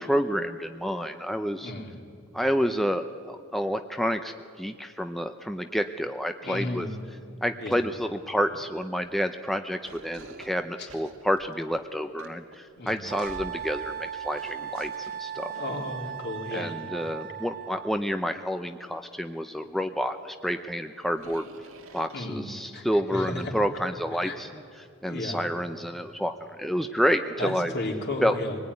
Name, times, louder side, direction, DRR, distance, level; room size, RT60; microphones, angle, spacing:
voice 1, 0.0-1.7 2.3-6.9 7.4-15.5 16.5-21.5 21.9-24.5 24.8-27.7 28.2-28.4, equal, ahead, 7 dB, 0.6 m, -29 dB
voice 2, 1.6-1.9 6.4-7.0 7.6-7.8 10.8-10.9 12.8-13.0 15.5-16.8 22.1-23.5 24.2-24.4 25.0-25.4 27.4-28.6, left 1 dB, 55° left, 1 dB, 3.4 m, -34 dB
sound 1, 8.5-9.2 9.8-13.8 14.4-16.2 16.6-16.8 19.1-19.2 19.6-19.7 20.2-20.3 21.1-22.7, right 2 dB, 85° right, 2.0 m, -49 dB
Wind instrument woodwind instrument, 13.1-18.0, right 9 dB, 45° right, 0.7 m, -37 dB
25.0 x 19.5 x 9.7 m, 2.5 s
head